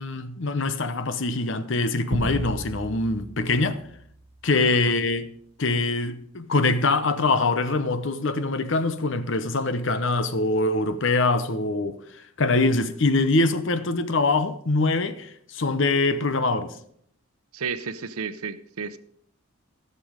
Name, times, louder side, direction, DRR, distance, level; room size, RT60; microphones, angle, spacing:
voice 1, 0.0-3.8 4.4-5.3 5.6-12.0 12.4-16.7, left 3 dB, 55° left, 0.8 m, -23 dB
sound 1, 2.1-4.7, right 1 dB, 45° right, 0.8 m, -34 dB
voice 2, 17.5-19.0, right 5 dB, 80° right, 0.7 m, -32 dB
14.5 x 6.9 x 5.1 m
head